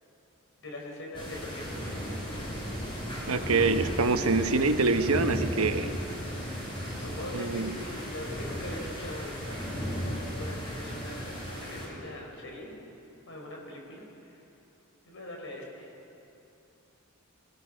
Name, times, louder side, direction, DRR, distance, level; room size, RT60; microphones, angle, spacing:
voice 1, 0.6-2.0 7.0-9.5 10.3-12.7 13.3-14.1 15.0-15.9, left 1 dB, 60° left, 0 dB, 5.1 m, -42 dB
sound 1, 1.1-11.9, equal, 25° left, 5.5 m, -35 dB
voice 2, 3.3-5.9 7.3-7.8, right 3 dB, 80° right, 8 dB, 1.1 m, -25 dB
29.5 x 17.5 x 6.5 m, 2.9 s
head